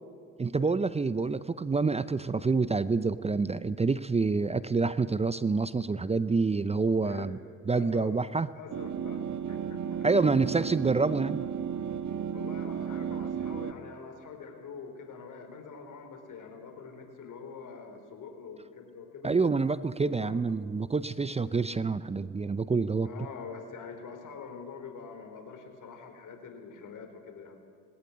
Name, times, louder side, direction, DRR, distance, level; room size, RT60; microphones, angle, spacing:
voice 1, 0.4-7.4 7.7-8.5 10.0-11.5 19.2-23.1, right 4 dB, 15° right, 15 dB, 0.7 m, -27 dB
voice 2, 7.7-8.1 8.5-10.5 12.3-19.4 20.0-20.4 23.0-27.6, left 5 dB, 50° left, 5 dB, 4.6 m, -45 dB
sound 1, 8.7-13.7, right 8 dB, 50° right, 1.4 m, -34 dB
19.0 x 17.5 x 9.8 m, 2.3 s
hypercardioid pair, 70°, 38 cm